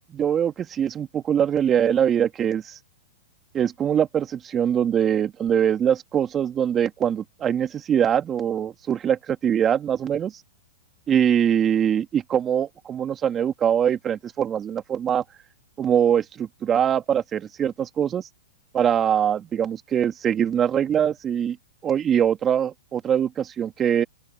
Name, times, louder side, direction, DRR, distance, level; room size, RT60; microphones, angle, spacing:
voice 1, 0.1-2.7 3.5-10.3 11.1-15.2 15.8-18.2 18.7-21.6 21.8-24.0, right 9 dB, 25° right, 2.3 m, -23 dB
open air
hypercardioid pair, 125°, 0 cm